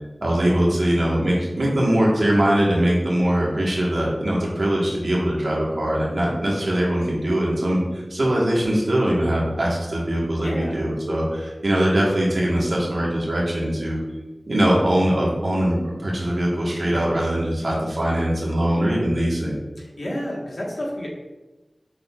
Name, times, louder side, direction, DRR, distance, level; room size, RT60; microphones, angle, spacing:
voice 1, 0.2-14.0 14.5-19.6, right 1 dB, 75° right, -4 dB, 1.2 m, -21 dB
voice 2, 10.4-10.8 19.8-21.1, equal, 75° left, -4 dB, 1.3 m, -30 dB
6.2 x 3.7 x 2.3 m, 1.1 s
wide cardioid pair, 45°, 0 cm